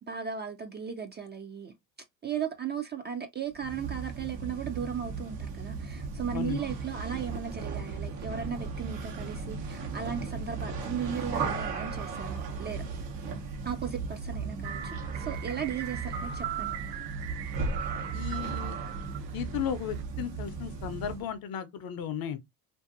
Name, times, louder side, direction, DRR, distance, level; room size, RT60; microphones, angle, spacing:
voice 1, 0.0-1.7 2.2-12.8 13.6-16.8, right 7 dB, 25° right, 0.3 m, -36 dB
sound 1, 3.5-21.3, right 4 dB, 90° right, 1.0 m, -36 dB
sound 2, 14.6-20.0, right 10 dB, 60° right, 0.7 m, -40 dB
voice 2, 18.1-18.8 19.3-22.4, left 9 dB, 50° left, 0.6 m, -35 dB
2.6 x 2.5 x 2.4 m
hypercardioid pair, 75°, 48 cm